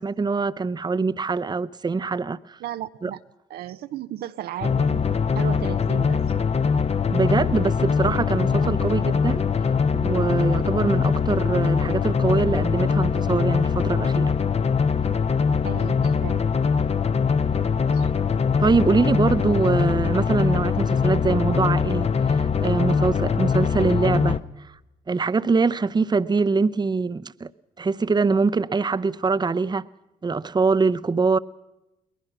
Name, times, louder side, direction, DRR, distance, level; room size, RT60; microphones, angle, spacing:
voice 1, 0.0-2.6 3.0-3.1 7.1-14.3 18.6-24.8 25.1-27.5 27.8-29.9 30.2-31.4, right 4 dB, 25° right, 0.7 m, -23 dB
voice 2, 2.6-3.2 3.5-5.1 5.4-6.2 8.6-8.7 15.6-16.4 17.9-18.1, right 12 dB, 70° right, 0.6 m, -34 dB
sound 1, 4.6-24.4, left 6 dB, 40° left, 0.9 m, -22 dB
22.0 x 20.0 x 6.0 m
hypercardioid pair, 50°, 17 cm